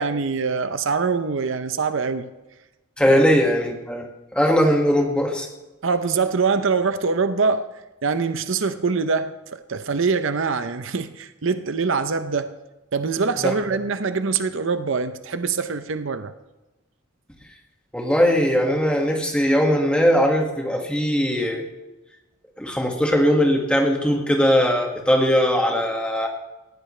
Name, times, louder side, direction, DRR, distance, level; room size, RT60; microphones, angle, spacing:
voice 1, 0.0-2.3 3.1-3.2 5.8-7.7 8.0-12.5 12.9-16.3, right 5 dB, 60° right, 0.7 m, -24 dB
voice 2, 3.0-4.1 4.3-5.5 13.4-13.5 17.9-21.6 22.6-26.3, equal, 5° left, 1.8 m, -20 dB
19.0 x 15.5 x 3.3 m
head